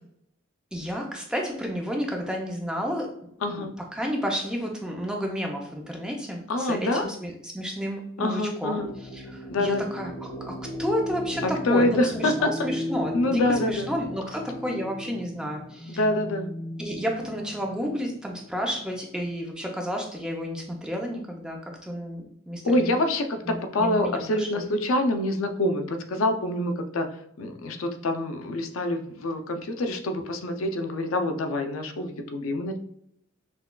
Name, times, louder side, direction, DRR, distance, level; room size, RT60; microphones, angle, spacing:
voice 1, 0.7-3.1 3.5-3.7 3.9-10.1 10.5-16.0 16.8-23.0 23.5-24.6, equal, 5° right, 0 dB, 0.5 m, -31 dB
voice 2, 3.4-3.7 6.5-7.1 8.2-8.9 9.5-9.8 11.6-12.7 13.1-13.9 15.9-16.5 22.6-27.1 27.4-32.8, left 1 dB, 80° left, 6 dB, 0.5 m, -26 dB
sound 1, 8.8-19.3, left 1 dB, 25° left, 0.9 m, -37 dB
5.9 x 2.2 x 2.2 m, 0.73 s
head